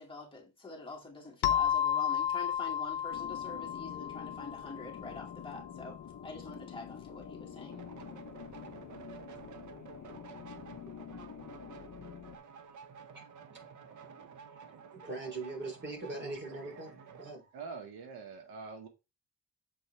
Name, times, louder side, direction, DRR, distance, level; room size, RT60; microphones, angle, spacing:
voice 1, 0.0-7.8, left 3 dB, 15° left, 2.3 m, -46 dB
sound 1, 1.4-5.8, left 9 dB, 80° left, 0.7 m, -33 dB
sound 2, 3.1-12.4, left 8 dB, 45° left, 0.8 m, -47 dB
sound 3, 7.7-17.4, right 6 dB, 50° right, 1.0 m, -51 dB
voice 2, 13.5-14.0 14.4-17.6, right 3 dB, 30° right, 3.4 m, -42 dB
voice 3, 17.5-18.9, right 4 dB, 80° right, 1.5 m, -44 dB
7.6 x 4.2 x 3.4 m
cardioid pair, 110°, 38 cm